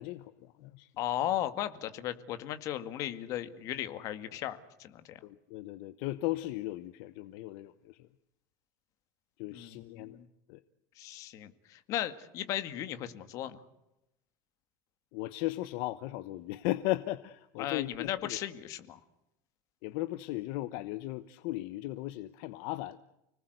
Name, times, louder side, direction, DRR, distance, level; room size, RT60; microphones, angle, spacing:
voice 1, 0.0-0.9 5.2-8.1 9.4-10.2 10.5-10.6 15.1-18.4 19.8-23.0, left 17 dB, 55° left, 13 dB, 1.0 m, -36 dB
voice 2, 1.0-5.2 9.5-10.3 11.0-13.6 17.6-19.0, left 12 dB, 40° left, 11 dB, 2.0 m, -36 dB
30.0 x 19.5 x 8.1 m, 0.87 s
cardioid pair, 170°, 9 cm